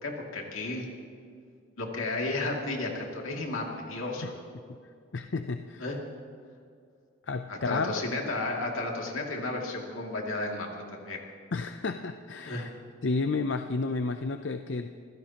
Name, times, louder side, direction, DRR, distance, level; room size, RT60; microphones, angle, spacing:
voice 1, 0.0-0.9 1.8-4.3 5.8-5.9 7.5-11.2 12.4-12.6, left 2 dB, 80° left, 0 dB, 2.5 m, -33 dB
voice 2, 5.1-6.0 7.2-8.0 11.5-12.7 13.0-14.9, left 3 dB, 60° left, 7 dB, 0.5 m, -31 dB
25.5 x 16.0 x 3.0 m, 2.4 s
head